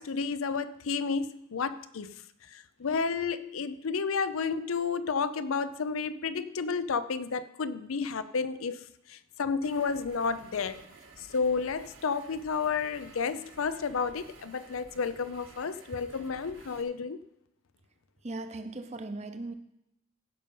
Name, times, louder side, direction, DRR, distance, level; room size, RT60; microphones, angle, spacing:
voice 1, 0.0-2.1 2.5-8.8 9.1-10.8 11.3-17.2, left 5 dB, 85° left, 0.6 m, -31 dB
sound 1, 9.6-16.8, right 3 dB, 75° right, 1.5 m, -53 dB
voice 2, 18.2-19.5, right 2 dB, 30° right, 0.6 m, -38 dB
16.0 x 5.3 x 5.4 m
head